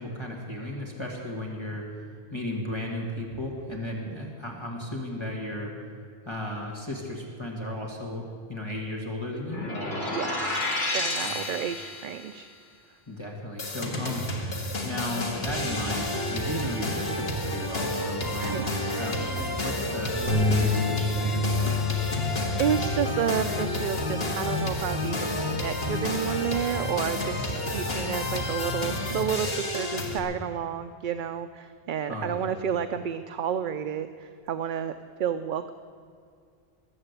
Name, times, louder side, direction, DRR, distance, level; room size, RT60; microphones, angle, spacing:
voice 1, 0.0-2.0 2.3-5.7 6.3-10.0 11.2-11.3 13.1-14.2 14.8-18.7 19.0-21.5 27.5-28.0 32.1-32.4, left 1 dB, 25° left, -2 dB, 1.9 m, -35 dB
sound 1, 9.5-12.3, left 2 dB, 50° left, 2.1 m, -30 dB
voice 2, 10.1-10.7 10.9-12.5 18.3-18.6 22.0-22.2 22.6-34.9 35.2-35.7, right 8 dB, 60° right, 10 dB, 0.7 m, -31 dB
sound 2, 13.6-30.2, left 1 dB, 70° left, 1.9 m, -30 dB
sound 3, 20.3-26.5, left 2 dB, 90° left, 3.6 m, -30 dB
21.0 x 7.8 x 8.1 m, 2.3 s
omnidirectional pair, 1.1 m